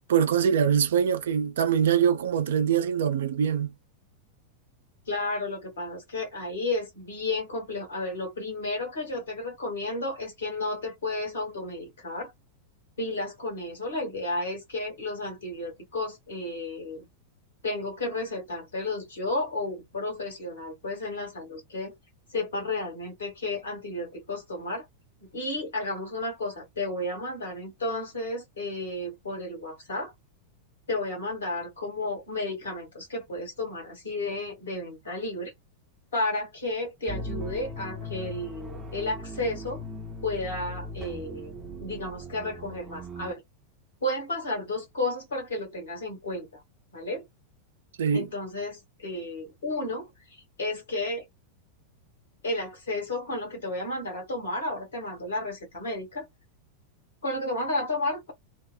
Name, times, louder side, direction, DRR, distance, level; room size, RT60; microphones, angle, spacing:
voice 1, 0.1-3.7 48.0-48.3, right 8 dB, 60° right, 0.4 m, -23 dB
voice 2, 5.1-12.3 13.0-17.1 17.6-21.9 22.3-24.8 25.2-30.1 30.9-35.5 36.1-39.8 40.2-41.5 41.8-43.4 44.0-46.6 46.9-47.3 48.1-50.1 50.6-51.2 52.4-56.3 57.2-58.3, left 2 dB, 65° left, 1.5 m, -32 dB
sound 1, 37.1-43.3, equal, 20° right, 0.6 m, -38 dB
2.8 x 2.1 x 2.3 m
figure-of-eight pair, 90°, 0 cm